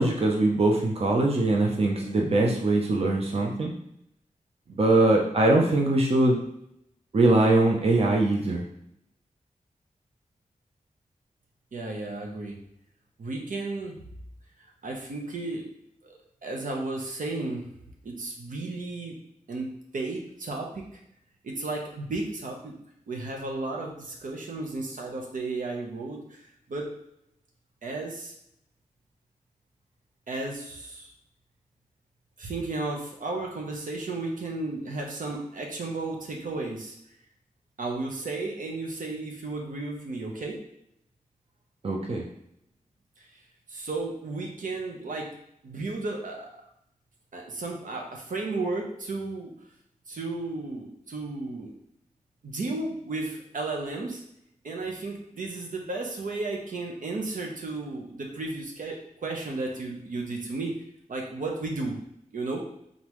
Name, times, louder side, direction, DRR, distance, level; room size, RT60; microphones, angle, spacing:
voice 1, 0.0-3.7 4.8-6.4 7.1-8.6 41.8-42.2, right 2 dB, 45° right, 0 dB, 0.7 m, -22 dB
voice 2, 11.7-12.6 13.2-14.0 14.8-15.6 16.0-16.1 16.4-17.6 18.0-19.2 19.5-21.0 21.4-22.7 23.1-26.9 27.8-28.3 30.3-31.1 32.4-36.9 37.8-40.6 43.2-43.4 43.7-45.3 45.6-46.5 47.3-49.5 50.1-51.7 52.4-54.2 54.6-60.7 61.1-62.0 62.3-62.6, right 2 dB, 80° right, 0 dB, 0.8 m, -33 dB
3.8 x 3.7 x 3.1 m, 0.75 s
wide cardioid pair, 125°, 14 cm